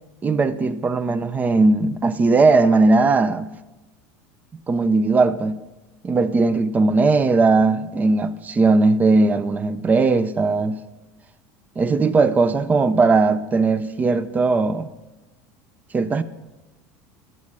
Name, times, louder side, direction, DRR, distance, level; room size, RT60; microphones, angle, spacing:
voice 1, 0.2-3.5 4.7-5.6 6.0-10.8 11.8-14.9 15.9-16.2, right 3 dB, 20° right, 0.6 m, -18 dB
15.5 x 7.3 x 6.2 m
supercardioid pair, 130°, 8 cm